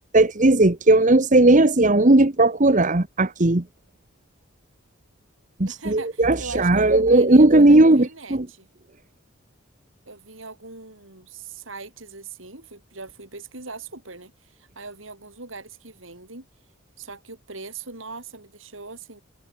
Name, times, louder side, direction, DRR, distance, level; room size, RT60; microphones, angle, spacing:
voice 1, 0.1-3.6 5.6-8.5, right 2 dB, 40° right, 1.2 m, -16 dB
voice 2, 5.7-8.7 10.1-16.5 17.0-19.2, right 3 dB, 75° right, 6.4 m, -40 dB
head